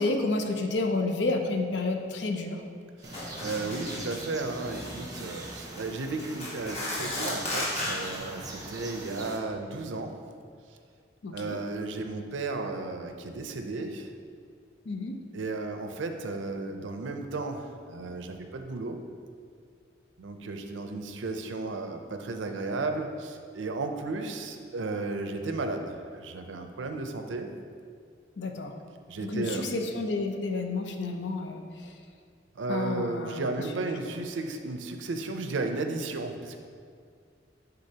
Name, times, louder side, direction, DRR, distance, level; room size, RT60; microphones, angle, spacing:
voice 1, 0.0-2.6 11.2-11.6 14.8-15.2 28.4-28.7 29.2-32.0 32.7-34.0, left 3 dB, 65° left, 4 dB, 0.6 m, -30 dB
sound 1, 3.0-9.4, right 1 dB, 20° right, 0.7 m, -41 dB
sound 2, 3.1-4.2 4.5-5.0 5.6-5.8 6.2-8.2, left 1 dB, 35° left, 1.3 m, -34 dB
voice 2, 3.4-10.1 11.3-14.1 15.3-19.0 20.2-27.5 29.1-29.6 32.6-36.6, right 3 dB, 80° right, 6 dB, 0.5 m, -34 dB
9.7 x 3.9 x 2.8 m, 2.1 s
head